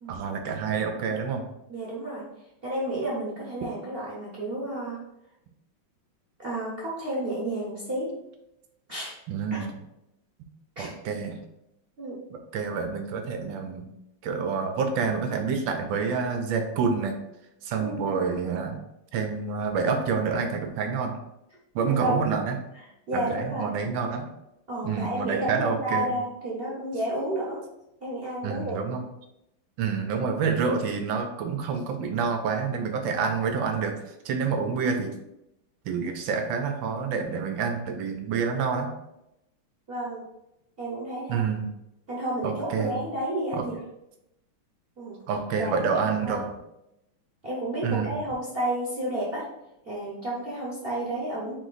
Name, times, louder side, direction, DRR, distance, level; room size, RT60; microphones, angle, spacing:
voice 1, 0.1-1.4 9.3-9.7 10.8-11.4 12.5-13.9 14.2-17.2 17.6-18.8 19.1-21.2 21.7-22.6 23.1-24.3 24.8-26.1 28.4-29.0 29.8-34.0 34.2-35.1 35.9-38.9 41.3-41.7 42.4-43.0 43.5-43.6 45.3-46.5 47.8-48.2, right 5 dB, 75° right, 5 dB, 1.3 m, -28 dB
voice 2, 1.7-2.2 2.6-5.0 6.4-8.1 8.9-9.1 9.5-9.7 10.8-10.9 12.0-12.2 17.8-18.2 21.8-22.2 23.1-23.7 24.7-27.6 28.0-28.8 39.9-40.2 40.8-41.4 42.1-43.8 45.0-45.2 45.6-46.4 47.4-49.4 49.8-51.6, right 1 dB, 40° right, -6 dB, 0.9 m, -31 dB
4.5 x 3.0 x 3.9 m, 0.86 s
omnidirectional pair, 2.2 m